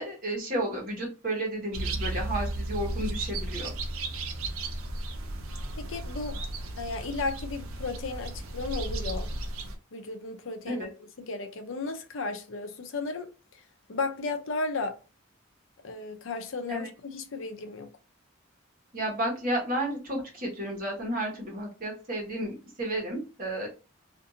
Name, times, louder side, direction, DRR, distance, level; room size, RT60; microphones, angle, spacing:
voice 1, 0.0-3.7 10.7-10.9 16.7-16.9 18.9-23.7, right 1 dB, 40° right, 1.2 m, -32 dB
sound 1, 1.7-9.8, right 2 dB, 85° right, 0.6 m, -34 dB
voice 2, 5.8-6.4 6.8-9.3 9.9-10.9 11.2-13.6 13.9-15.0 15.8-17.9, left 3 dB, 65° left, 0.5 m, -34 dB
2.5 x 2.5 x 2.6 m
head